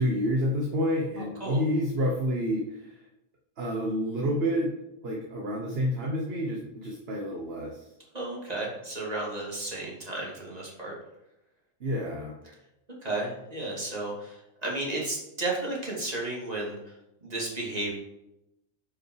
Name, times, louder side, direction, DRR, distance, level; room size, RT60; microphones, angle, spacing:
voice 1, 0.0-3.1 3.6-4.7 5.0-7.9 11.8-12.4, equal, 50° right, 0 dB, 1.3 m, -29 dB
voice 2, 1.2-1.6 8.1-10.9 13.0-17.0 17.2-17.9, right 2 dB, 30° right, -3 dB, 2.7 m, -33 dB
9.6 x 5.6 x 4.7 m, 0.89 s
omnidirectional pair, 1.4 m